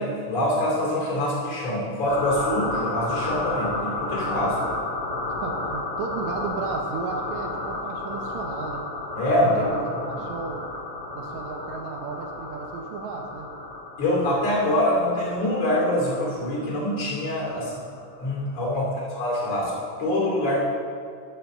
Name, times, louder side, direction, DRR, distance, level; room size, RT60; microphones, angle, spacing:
voice 1, 0.0-4.6 9.2-10.2 14.0-17.7 18.2-19.7 20.0-20.6, left 1 dB, 55° left, -3 dB, 3.6 m, -25 dB
sound 1, 2.0-18.3, left 2 dB, 75° left, 3.7 m, -32 dB
voice 2, 5.4-8.9 9.4-10.7 11.1-13.5 17.5-17.7 18.6-18.8, right 4 dB, 75° right, 2 dB, 1.9 m, -34 dB
13.5 x 4.7 x 6.5 m, 2.2 s
omnidirectional pair, 3.6 m